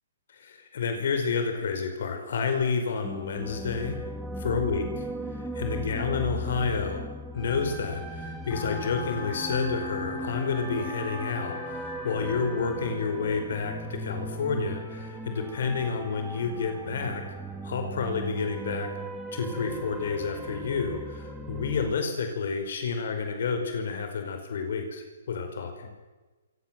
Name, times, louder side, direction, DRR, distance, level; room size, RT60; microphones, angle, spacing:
voice 1, 0.3-4.0 4.4-7.1 7.3-18.9 19.3-25.9, left 5 dB, 55° left, 6 dB, 5.0 m, -30 dB
sound 1, 3.0-21.9, right 1 dB, 5° right, 2.3 m, -38 dB
sound 2, 8.5-13.5, left 4 dB, 20° left, 7.2 m, -41 dB
27.5 x 26.5 x 7.7 m, 1.2 s
hypercardioid pair, 170°, 0 cm